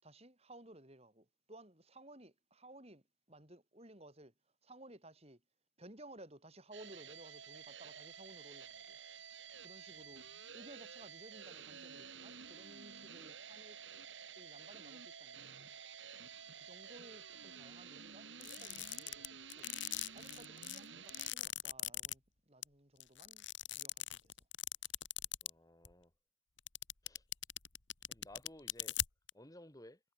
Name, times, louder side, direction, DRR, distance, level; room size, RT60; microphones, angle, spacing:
voice 1, 0.0-4.3 4.6-5.4 5.8-9.0 9.6-10.2 10.5-13.8 14.4-15.7 16.0-16.3 16.5-19.7 20.1-24.3, right 1 dB, 30° right, 5.7 m, -58 dB
sound 1, 6.7-21.3, right 7 dB, 70° right, 4.6 m, -52 dB
sound 2, 18.4-22.1 22.6-22.7 23.0-25.5 25.8-25.9 26.6-29.3, left 14 dB, 70° left, 2.4 m, -40 dB
voice 2, 25.4-26.1 27.0-27.2 28.1-29.0 29.3-30.0, left 1 dB, 20° left, 2.4 m, -56 dB
head